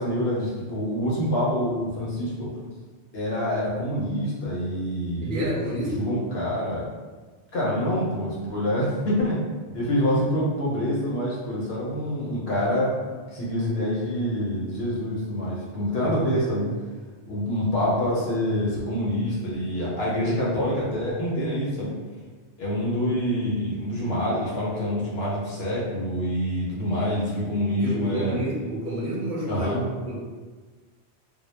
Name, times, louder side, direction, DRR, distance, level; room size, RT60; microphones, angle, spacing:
voice 1, 0.0-2.5 3.1-5.5 5.9-6.8 7.5-9.4 9.7-13.0 13.3-16.7 17.3-21.9 22.6-28.4 29.5-29.8, equal, 65° left, -5 dB, 0.8 m, -26 dB
voice 2, 5.2-6.1 16.0-16.5 27.8-30.1, right 1 dB, 55° right, -4 dB, 0.7 m, -29 dB
2.1 x 2.0 x 3.1 m, 1.4 s
omnidirectional pair, 1.2 m